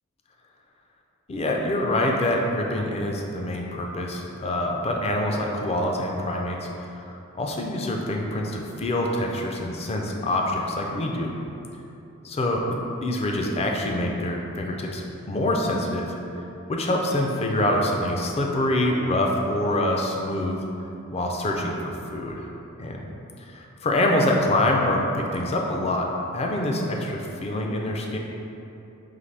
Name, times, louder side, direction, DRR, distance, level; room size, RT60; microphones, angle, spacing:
voice 1, 1.3-11.3 12.2-12.7 13.0-16.1 16.7-20.6 21.1-22.5 22.8-23.0 23.5-28.2, left 1 dB, 30° left, 0 dB, 0.4 m, -25 dB
3.9 x 2.9 x 3.3 m, 2.9 s
head